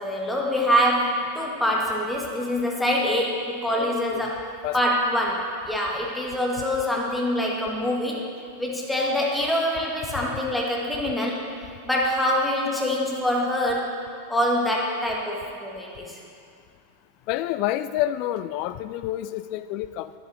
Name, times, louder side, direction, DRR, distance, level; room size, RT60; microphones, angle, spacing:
voice 1, 0.0-4.5 4.7-8.2 8.6-11.4 11.8-13.9 14.3-16.2, equal, 5° left, -2 dB, 1.4 m, -25 dB
voice 2, 3.7-4.2 4.6-5.0 17.3-20.2, left 13 dB, 45° left, 14 dB, 0.3 m, -29 dB
10.0 x 7.6 x 3.9 m, 2.4 s
figure-of-eight pair, 90°, 0 cm